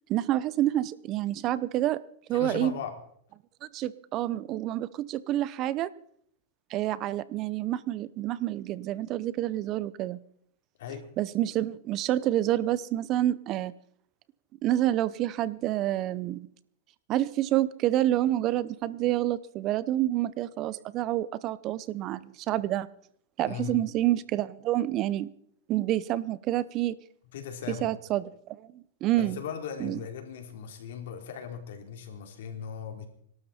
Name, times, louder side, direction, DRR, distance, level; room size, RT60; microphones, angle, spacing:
voice 1, 0.1-2.0 2.3-2.8 3.6-5.9 6.7-10.2 11.2-13.7 14.6-16.5 17.1-22.9 23.4-25.3 25.7-26.9 27.7-29.4 29.8-30.0, right 13 dB, 40° right, 18 dB, 0.7 m, -28 dB
voice 2, 2.3-3.0 10.8-11.1 23.5-23.8 27.3-27.9 29.2-33.0, left 7 dB, 75° left, 4 dB, 3.7 m, -38 dB
24.0 x 12.5 x 4.4 m, 0.65 s
hypercardioid pair, 135°, 0 cm